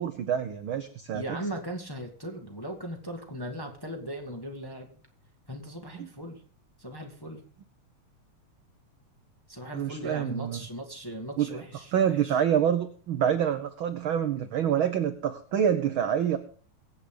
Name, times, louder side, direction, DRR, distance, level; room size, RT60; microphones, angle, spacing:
voice 1, 0.0-1.2 6.0-6.1 9.7-10.6 11.4-11.6 11.9-16.4, right 9 dB, 70° right, 8 dB, 1.2 m, -27 dB
voice 2, 1.1-4.9 5.5-6.4 6.8-7.4 9.5-12.4, right 1 dB, 10° left, 1 dB, 1.6 m, -38 dB
23.5 x 8.3 x 3.9 m, 0.42 s
omnidirectional pair, 3.5 m